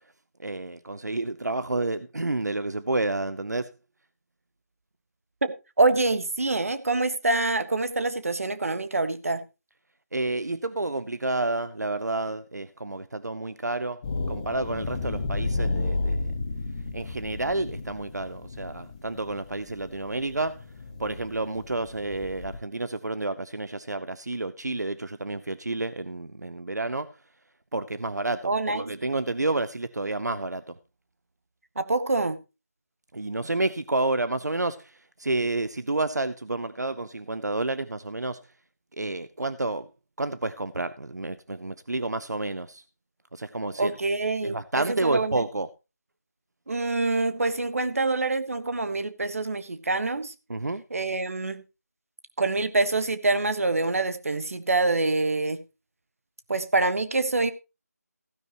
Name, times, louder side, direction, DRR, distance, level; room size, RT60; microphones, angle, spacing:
voice 1, 0.4-3.7 10.1-14.0 14.3-16.3 16.9-20.7 21.0-27.2 27.7-30.8 33.1-38.4 39.0-39.9 40.2-42.8 43.3-43.9 44.4-45.7 50.5-50.8, right 2 dB, 80° right, 0.7 m, -30 dB
voice 2, 5.4-9.4 28.4-28.9 31.8-32.4 43.8-44.6 44.9-45.3 46.7-50.3 50.9-51.6 52.4-55.6 56.5-57.5, right 3 dB, 55° right, 1.4 m, -25 dB
sound 1, 14.0-22.6, left 3 dB, 25° left, 1.6 m, -33 dB
16.0 x 10.0 x 3.0 m
figure-of-eight pair, 165°, 9 cm